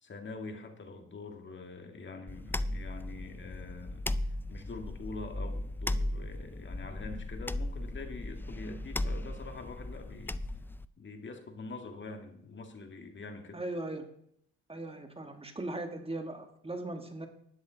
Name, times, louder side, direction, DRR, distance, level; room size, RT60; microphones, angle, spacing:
voice 1, 0.0-4.1 4.5-10.4 11.0-13.6, left 3 dB, 40° left, 5 dB, 2.0 m, -44 dB
sound 1, 2.3-10.9, left 1 dB, 5° left, 0.4 m, -36 dB
voice 2, 13.5-14.0 14.7-17.3, right 2 dB, 20° right, 5 dB, 1.7 m, -38 dB
13.0 x 10.5 x 4.0 m, 0.69 s
cardioid pair, 90°, 30 cm